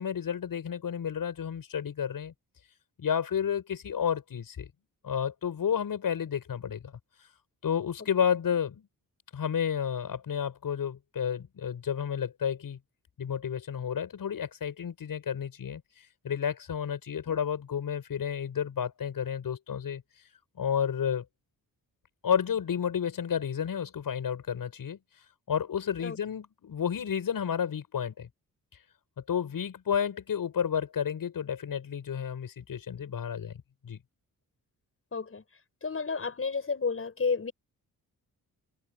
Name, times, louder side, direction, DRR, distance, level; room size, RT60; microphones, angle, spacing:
voice 1, 0.0-2.3 3.0-4.7 5.0-6.9 7.6-8.9 9.3-12.8 13.2-15.8 16.2-20.0 20.6-21.2 22.2-25.0 25.5-28.3 29.3-33.5 33.8-34.0, left 8 dB, 65° left, 7.9 m, -31 dB
voice 2, 35.1-35.4 35.8-37.5, left 5 dB, 35° left, 7.2 m, -31 dB
cardioid pair, 110°, 36 cm